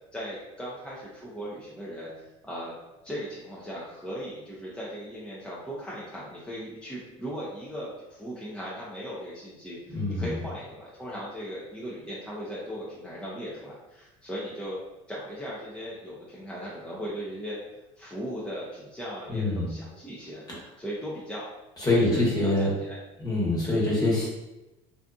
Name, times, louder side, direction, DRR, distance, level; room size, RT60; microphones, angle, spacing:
voice 1, 0.1-2.7 3.0-14.8 15.1-17.6 18.0-20.4 20.8-21.5 21.8-23.0, equal, 5° left, -7 dB, 0.6 m, -38 dB
voice 2, 9.9-10.3 19.3-19.8 20.5-20.6 21.8-22.7 23.2-24.3, left 2 dB, 20° left, -5 dB, 1.1 m, -25 dB
2.6 x 2.4 x 2.3 m, 1.0 s
supercardioid pair, 90°, 18 cm